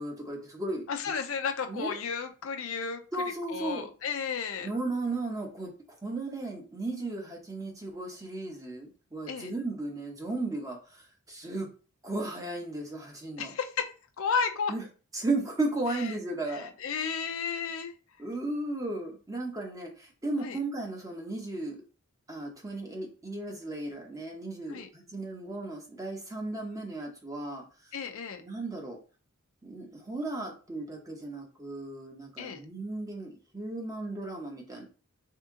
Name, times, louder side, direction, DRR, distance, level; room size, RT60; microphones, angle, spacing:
voice 1, 0.0-0.8 1.7-2.0 3.1-3.9 4.6-11.7 12.0-13.5 14.7-14.8 15.1-16.7 18.2-21.8 22.3-27.9 28.4-29.0 29.6-34.8, right 2 dB, 15° right, 1 dB, 0.8 m, -35 dB
voice 2, 0.9-3.0 3.5-4.7 9.3-9.5 13.4-13.9 14.2-14.7 15.9-16.0 16.5-17.9 20.4-20.6 24.7-24.9 27.9-28.4 32.4-32.6, left 6 dB, 65° left, 6 dB, 0.5 m, -33 dB
3.5 x 2.8 x 3.6 m, 0.35 s
head